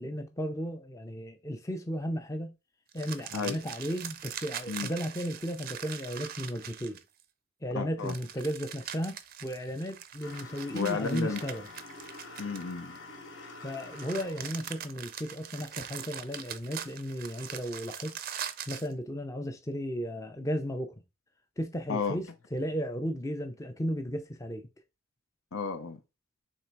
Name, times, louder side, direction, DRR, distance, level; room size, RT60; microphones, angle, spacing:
voice 1, 0.0-2.5 2.9-7.0 7.6-11.7 13.6-18.2 18.7-20.9 21.6-24.7, equal, 15° left, 0.4 m, -35 dB
sound 1, 2.9-7.2 8.0-13.0 13.7-18.9, right 9 dB, 45° right, 0.4 m, -42 dB
voice 2, 7.7-8.1 10.7-11.4 12.4-13.0 21.9-22.2 25.5-26.0, left 5 dB, 85° left, 0.8 m, -32 dB
sound 2, 10.2-14.6, left 2 dB, 65° left, 1.1 m, -46 dB
3.6 x 3.2 x 4.5 m
head